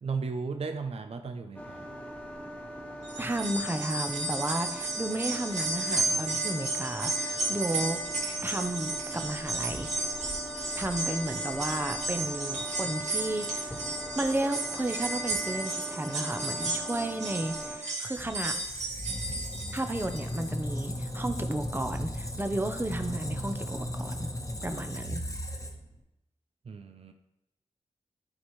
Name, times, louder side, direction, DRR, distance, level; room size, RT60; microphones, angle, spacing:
voice 1, 0.0-1.9 26.7-27.1, right 4 dB, 55° right, 6 dB, 0.5 m, -35 dB
Machine Whirring, 1.6-17.8, equal, 10° left, 1.5 m, -41 dB
Sleighbells II, 3.0-20.4 20.8-20.9 22.0-22.1, right 2 dB, 75° right, 1.7 m, -33 dB
voice 2, 3.2-8.0 8.4-10.1 10.8-13.9 14.1-18.6 19.7-24.3 24.6-25.2, right 1 dB, 15° right, 7 dB, 0.7 m, -33 dB
Squeak, 18.1-26.0, equal, 25° left, 1.1 m, -36 dB
12.5 x 4.3 x 3.2 m, 0.89 s
wide cardioid pair, 80°, 12 cm